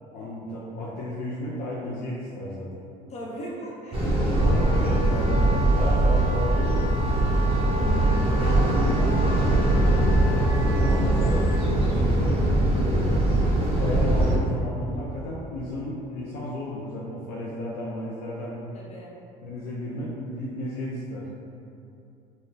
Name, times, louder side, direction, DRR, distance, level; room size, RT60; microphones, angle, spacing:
voice 1, 0.1-2.8 4.3-7.3 8.4-10.1 10.4-11.4 11.8-13.2 13.8-18.5 19.4-21.3, left 1 dB, 65° left, -6 dB, 0.5 m, -33 dB
voice 2, 3.1-4.4 4.8-4.9 7.7-9.1 18.7-19.1, left 1 dB, 40° left, -5 dB, 0.8 m, -38 dB
sound 1, 3.9-14.4, right 1 dB, 35° right, 0.7 m, -22 dB
Wind instrument woodwind instrument, 3.9-11.5, right 1 dB, 90° right, 0.5 m, -36 dB
3.6 x 2.2 x 2.6 m, 2.6 s
supercardioid pair, 100°, 18 cm